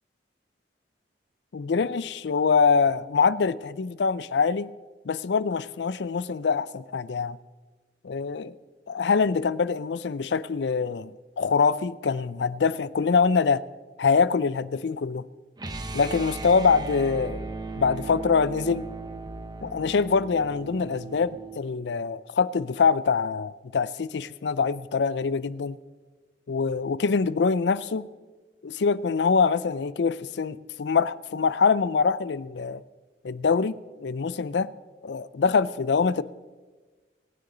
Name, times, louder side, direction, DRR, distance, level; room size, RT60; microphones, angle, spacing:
voice 1, 1.5-4.7 5.0-7.4 8.0-8.6 8.9-13.6 14.0-15.2 15.9-17.4 17.8-18.9 19.6-25.8 26.5-28.1 28.6-32.8 33.2-34.7 35.0-36.2, left 5 dB, 75° left, 0.5 m, -24 dB
sound 1, 15.6-21.6, right 3 dB, 25° right, 0.8 m, -37 dB
23.5 x 9.7 x 3.9 m
head